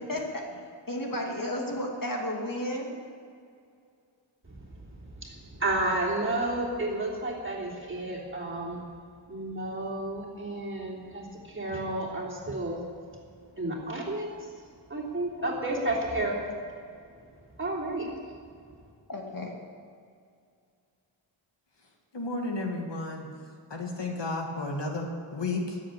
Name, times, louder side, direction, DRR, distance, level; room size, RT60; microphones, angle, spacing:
voice 1, 0.1-0.6 0.9-2.9 15.4-15.5 19.1-19.5, left 1 dB, 45° left, 0 dB, 2.5 m, -33 dB
voice 2, 4.4-8.8 9.3-12.9 13.1-13.2 13.6-14.3 14.9-16.8 17.6-18.1, right 2 dB, 25° right, -3 dB, 3.3 m, -32 dB
voice 3, 22.1-23.3 23.7-25.8, left 2 dB, 60° left, 1 dB, 1.9 m, -32 dB
13.5 x 7.8 x 10.0 m, 2.3 s
wide cardioid pair, 85°, 47 cm